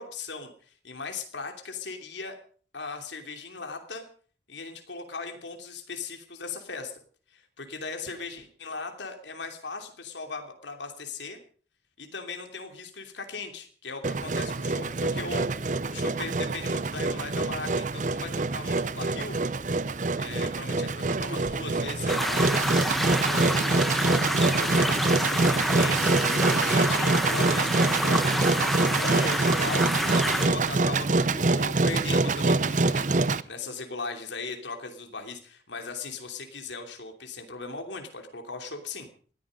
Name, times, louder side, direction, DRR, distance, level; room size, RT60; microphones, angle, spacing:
voice 1, 0.0-2.3 2.7-4.0 4.5-6.9 7.3-11.4 12.0-15.5 15.9-19.4 20.2-22.6 23.1-33.1 33.5-39.1, left 3 dB, 80° left, 5 dB, 3.0 m, -38 dB
Engine, 14.0-33.4, right 3 dB, 45° right, 0.7 m, -25 dB
sound 1, 22.1-30.5, equal, ahead, 1.3 m, -28 dB
20.0 x 14.0 x 5.2 m, 0.43 s
head